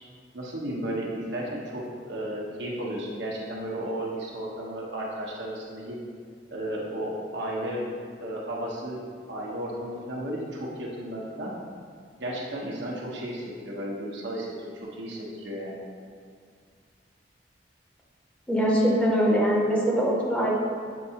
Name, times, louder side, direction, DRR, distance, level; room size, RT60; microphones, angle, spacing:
voice 1, 0.3-6.0 6.5-7.8 8.2-9.0 9.3-11.5 12.2-15.8, right 1 dB, 85° right, -3 dB, 1.1 m, -34 dB
voice 2, 18.5-20.5, equal, 5° left, -4 dB, 0.9 m, -22 dB
7.5 x 4.6 x 2.9 m, 2.1 s
head